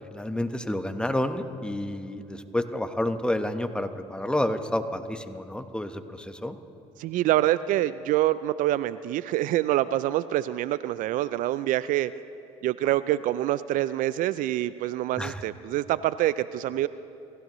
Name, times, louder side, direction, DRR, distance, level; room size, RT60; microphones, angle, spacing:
voice 1, 0.0-6.6 15.2-15.4, left 1 dB, 5° left, 8 dB, 1.1 m, -29 dB
voice 2, 7.0-12.1 12.6-16.9, right 14 dB, 70° right, 16 dB, 0.4 m, -26 dB
28.5 x 15.5 x 3.1 m, 2.8 s
supercardioid pair, 75°, 14 cm